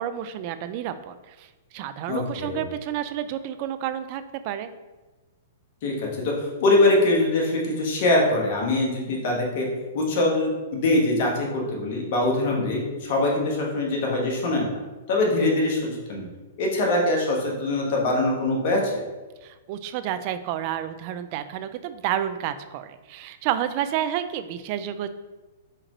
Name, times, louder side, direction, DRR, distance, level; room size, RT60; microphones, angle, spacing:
voice 1, 0.0-4.7 19.4-25.1, right 11 dB, 45° right, 11 dB, 0.3 m, -30 dB
voice 2, 2.1-2.6 5.8-6.3 6.6-9.7 9.9-14.7 15.1-16.3 16.6-18.8, left 2 dB, 55° left, -1 dB, 1.3 m, -23 dB
4.4 x 3.6 x 3.0 m, 1.2 s
hypercardioid pair, 120°, 0 cm